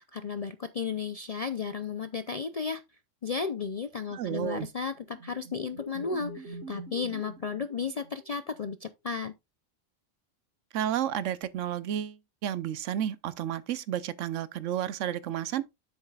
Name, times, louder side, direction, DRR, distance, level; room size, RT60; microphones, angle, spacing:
voice 1, 0.0-2.8 3.2-9.3, left 5 dB, 55° left, 0.4 m, -34 dB
voice 2, 4.1-4.7 10.7-15.7, right 10 dB, 75° right, 1.0 m, -32 dB
sound 1, 4.6-8.6, right 1 dB, 60° right, 1.4 m, -44 dB
9.7 x 8.0 x 2.3 m
omnidirectional pair, 1.3 m